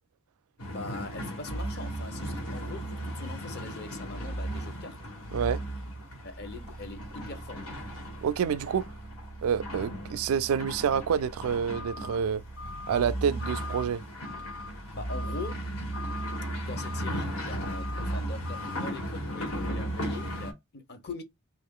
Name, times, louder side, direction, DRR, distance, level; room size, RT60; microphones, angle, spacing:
sound 1, 0.6-20.5, right 1 dB, 85° left, 1.4 m, -36 dB
voice 1, 0.7-5.0 6.2-7.8 14.7-15.6 16.7-21.2, left 3 dB, 50° left, 0.7 m, -42 dB
voice 2, 8.2-8.9 9.4-12.4 12.9-14.0, right 7 dB, 75° right, 0.3 m, -28 dB
2.9 x 2.4 x 3.6 m
head